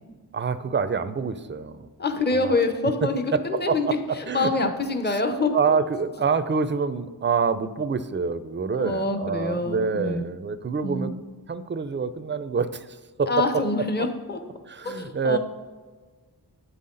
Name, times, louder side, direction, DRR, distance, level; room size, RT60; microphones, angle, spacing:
voice 1, 0.3-1.9 2.3-2.6 3.3-4.5 5.1-11.1 11.5-13.6 14.0-14.1 14.7-15.4, right 5 dB, 30° right, 12 dB, 0.5 m, -27 dB
voice 2, 2.0-3.9 4.1-5.8 8.7-10.2 10.8-11.1 13.3-14.4 14.8-15.4, left 3 dB, 25° left, 6 dB, 0.8 m, -26 dB
8.1 x 5.7 x 3.9 m, 1.4 s
wide cardioid pair, 55°, 40 cm